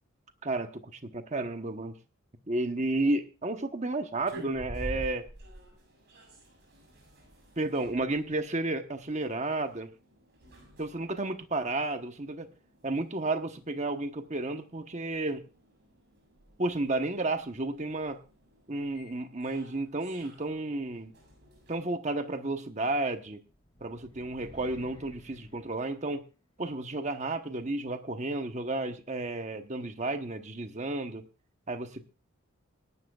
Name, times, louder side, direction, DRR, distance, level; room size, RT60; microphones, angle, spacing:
voice 1, 0.4-2.0 2.5-5.3 7.6-9.9 10.8-12.5 12.8-15.4 16.6-18.2 18.7-21.1 21.7-23.4 23.8-26.3 26.6-31.2 31.7-32.0, right 2 dB, 35° right, 7 dB, 1.1 m, -32 dB
sound 1, 4.1-21.8, equal, 50° right, 7.2 m, -49 dB
sound 2, 23.4-26.6, left 1 dB, 20° left, 1.5 m, -55 dB
25.0 x 12.0 x 2.4 m, 0.32 s
head